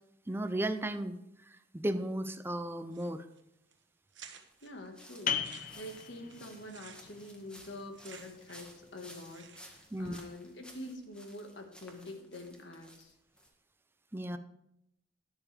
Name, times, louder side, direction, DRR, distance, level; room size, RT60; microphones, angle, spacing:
voice 1, 0.3-1.2 1.7-3.2 9.9-10.2 14.1-14.4, right 1 dB, 15° right, 9 dB, 0.6 m, -34 dB
sound 1, 2.9-3.4 3.7-3.8 4.1-4.7 5.2-8.8 9.0-9.9, right 7 dB, 85° right, 1.2 m, -54 dB
sound 2, 4.5-13.5, equal, 5° left, 1.5 m, -56 dB
voice 2, 4.6-13.1, left 1 dB, 80° left, 4 dB, 1.6 m, -46 dB
sound 3, 5.3-10.6, left 7 dB, 50° left, 0.8 m, -41 dB
11.5 x 11.0 x 3.4 m, 0.82 s
head